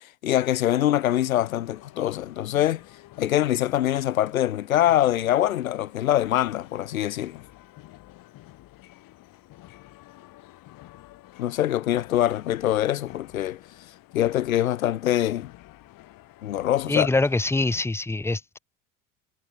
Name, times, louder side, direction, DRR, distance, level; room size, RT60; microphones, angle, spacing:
voice 1, 0.0-2.8 3.2-7.4 11.4-13.6 14.1-15.5 16.4-17.1, left 12 dB, 85° left, 0.7 m, -24 dB
sound 1, 0.9-17.8, left 17 dB, 55° left, 5.5 m, -49 dB
voice 2, 16.9-18.6, left 2 dB, 5° left, 1.0 m, -24 dB
hypercardioid pair, 70°, 40 cm